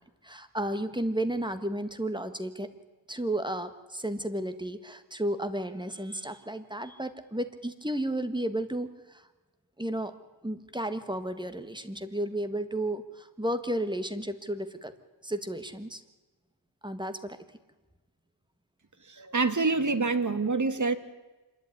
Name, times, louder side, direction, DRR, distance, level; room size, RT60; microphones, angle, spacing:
voice 1, 0.2-2.7 3.1-9.2 9.8-10.1 10.4-14.9 15.2-16.0 16.8-17.4, right 1 dB, 10° right, 10 dB, 1.6 m, -33 dB
voice 2, 19.1-21.0, right 3 dB, 40° right, 10 dB, 1.6 m, -26 dB
26.0 x 11.5 x 9.7 m, 1.2 s
wide cardioid pair, 75°, 47 cm